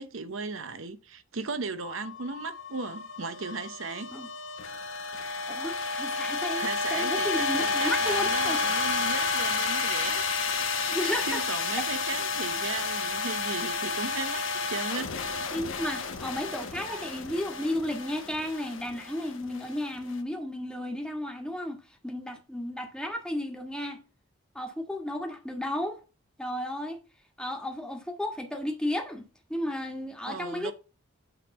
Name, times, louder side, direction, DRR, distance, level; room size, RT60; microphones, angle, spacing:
voice 1, 0.0-4.1 6.6-15.2 16.9-17.0 30.3-30.7, right 4 dB, 65° right, 0.8 m, -37 dB
sound 1, 1.8-20.1, left 4 dB, 65° left, 1.1 m, -31 dB
voice 2, 5.3-8.6 10.9-11.4 15.5-24.0 24.5-26.0 26.4-27.0 27.4-30.7, left 1 dB, 5° left, 1.4 m, -33 dB
9.1 x 3.6 x 6.9 m
head